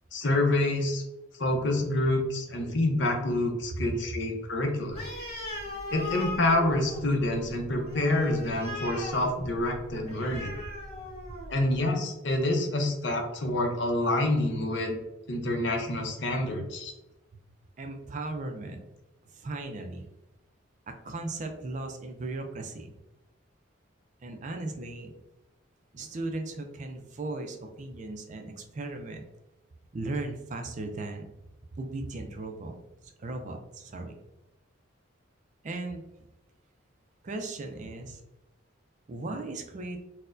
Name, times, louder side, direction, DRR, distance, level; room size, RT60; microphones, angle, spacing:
voice 1, 0.1-1.0 1.3-5.0 5.9-10.5 11.5-15.0 15.3-16.9, left 1 dB, 60° left, 3 dB, 0.6 m, -27 dB
Animal, 4.9-11.6, left 1 dB, 30° left, 1.2 m, -39 dB
voice 2, 10.9-11.4 17.3-17.4 17.8-18.8 19.3-20.1 21.0-22.9 24.2-25.1 25.9-29.2 29.9-31.3 31.7-32.8 33.0-34.1 35.6-36.0 37.2-38.2 39.1-40.0, right 2 dB, 35° right, 4 dB, 0.4 m, -37 dB
4.2 x 2.1 x 2.5 m, 0.96 s
head